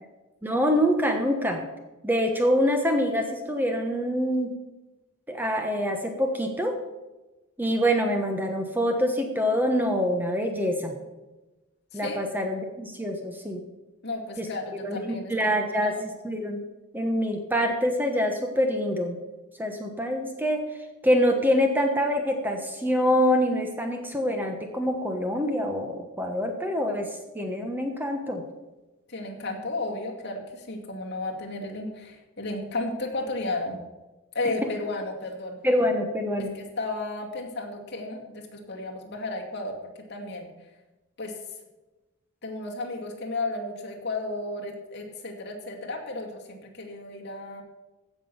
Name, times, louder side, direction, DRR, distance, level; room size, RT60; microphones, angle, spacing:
voice 1, 0.4-1.6 2.0-4.6 5.3-6.8 7.6-10.9 11.9-13.6 14.4-14.5 14.8-15.9 16.2-16.6 16.9-19.2 19.6-20.6 21.0-28.4 34.6-34.7 35.6-36.5, equal, 10° right, 4 dB, 1.1 m, -25 dB
voice 2, 11.9-12.2 14.0-15.3 15.7-16.0 29.1-33.8 34.3-35.6 36.4-39.8 40.1-40.5 41.2-41.4 42.4-47.6, left 2 dB, 50° left, 0 dB, 2.4 m, -33 dB
15.5 x 6.2 x 7.0 m, 1.1 s
head